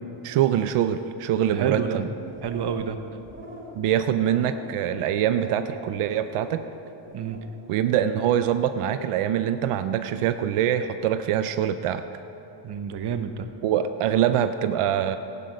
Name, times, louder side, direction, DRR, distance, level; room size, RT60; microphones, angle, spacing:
voice 1, 0.2-2.1 3.8-6.6 7.7-12.0 13.6-15.2, right 10 dB, 85° right, 10 dB, 0.6 m, -24 dB
voice 2, 1.5-2.0 2.4-3.0 7.1-7.4 12.6-13.5, right 7 dB, 50° right, 9 dB, 0.9 m, -29 dB
sound 1, 2.3-2.9 3.2-3.8 4.2-4.7 5.2-5.7 6.1-6.6 7.0-7.4, equal, 25° right, 2.7 m, -43 dB
14.5 x 11.0 x 5.2 m, 2.9 s
cardioid pair, 110°, 50 cm